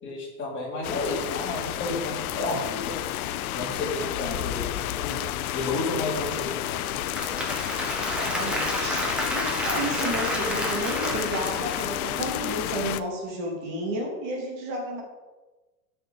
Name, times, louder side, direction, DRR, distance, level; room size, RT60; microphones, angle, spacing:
voice 1, 0.0-5.2 5.5-6.9, left 2 dB, 25° left, -3 dB, 2.9 m, -32 dB
sound 1, 0.8-13.0, left 12 dB, 75° left, 0.7 m, -31 dB
Applause / Crowd, 6.8-12.2, equal, ahead, 1.4 m, -31 dB
voice 2, 8.1-15.0, right 1 dB, 45° right, 0 dB, 2.6 m, -32 dB
12.5 x 5.6 x 4.1 m, 1.2 s
supercardioid pair, 145°, 44 cm